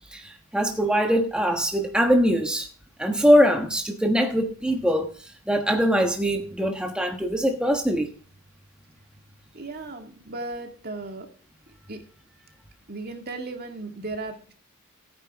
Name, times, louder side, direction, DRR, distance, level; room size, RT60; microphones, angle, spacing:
voice 1, 0.1-2.7 3.0-8.1, equal, 5° right, 1.2 m, -22 dB
voice 2, 9.5-11.3 11.9-12.0 12.9-14.5, right 2 dB, 45° right, 2.0 m, -36 dB
15.0 x 9.0 x 3.5 m
head